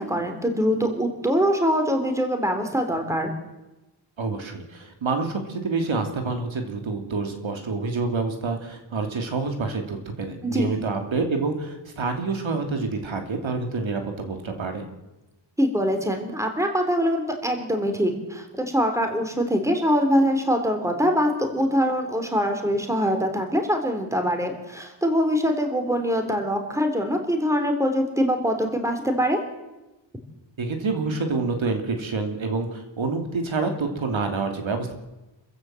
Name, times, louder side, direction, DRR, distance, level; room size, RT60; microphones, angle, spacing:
voice 1, 0.0-3.3 10.4-10.7 15.6-29.4, equal, 5° right, 5 dB, 3.3 m, -23 dB
voice 2, 4.2-14.9 30.6-34.9, right 4 dB, 75° right, 4 dB, 2.9 m, -27 dB
27.0 x 15.0 x 7.7 m, 1.0 s
wide cardioid pair, 160°, 47 cm